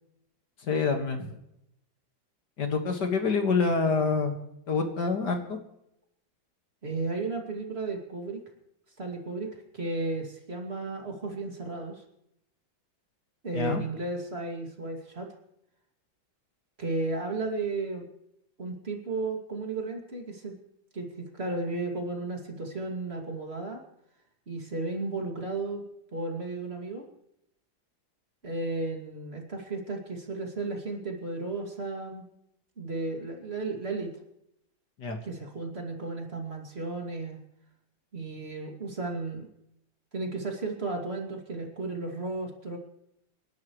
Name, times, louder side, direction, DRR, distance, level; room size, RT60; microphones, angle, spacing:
voice 1, 0.6-1.3 2.6-4.4 4.7-5.6 13.5-13.8 35.0-35.2, left 4 dB, 60° left, 5 dB, 2.3 m, -27 dB
voice 2, 6.8-8.4 9.0-12.0 13.4-15.3 16.8-18.1 18.6-20.5 20.9-23.8 24.5-25.8 26.1-27.1 28.4-32.2 32.8-34.1 35.2-37.4 38.1-39.5 40.1-42.8, right 3 dB, 30° right, 2 dB, 2.7 m, -34 dB
29.0 x 11.5 x 3.2 m, 0.79 s
omnidirectional pair, 2.1 m